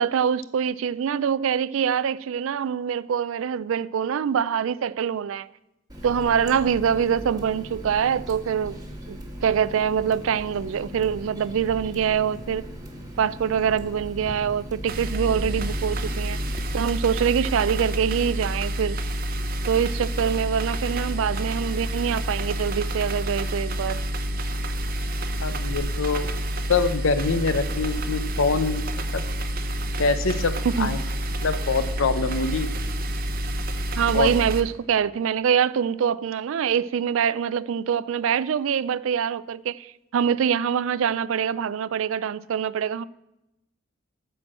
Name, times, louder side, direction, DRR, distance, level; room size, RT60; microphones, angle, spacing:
voice 1, 0.0-5.5 6.0-8.8 9.1-12.7 13.2-16.4 16.7-19.0 19.7-24.0 30.6-31.0 34.0-43.0, right 7 dB, 75° right, 0.3 m, -24 dB
Water tap faucet, 5.9-16.6, equal, 20° right, 1.2 m, -38 dB
sound 1, 14.9-34.6, right 1 dB, 45° right, 0.7 m, -28 dB
voice 2, 25.4-26.3 26.7-28.8 29.1-29.2 30.0-31.0 31.4-32.7 34.1-34.3, left 4 dB, 75° left, 0.6 m, -24 dB
13.0 x 4.5 x 7.5 m
head